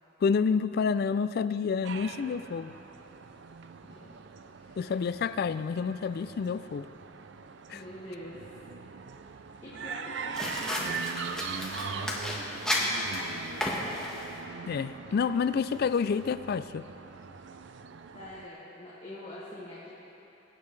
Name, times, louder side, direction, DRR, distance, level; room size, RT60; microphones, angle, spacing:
voice 1, 0.2-2.7 4.8-6.9 7.7-7.8 14.7-16.9, left 5 dB, 50° left, 14 dB, 0.3 m, -29 dB
sound 1, 1.8-18.5, right 5 dB, 65° right, 0.5 m, -41 dB
voice 2, 3.8-4.1 4.5-4.9 7.7-8.5 9.6-11.0 11.7-12.5 12.8-14.1 18.1-19.9, left 1 dB, 30° left, -9 dB, 2.1 m, -45 dB
sound 2, 10.3-14.4, left 1 dB, 5° left, 1.3 m, -33 dB
22.0 x 9.4 x 3.2 m, 2.9 s
head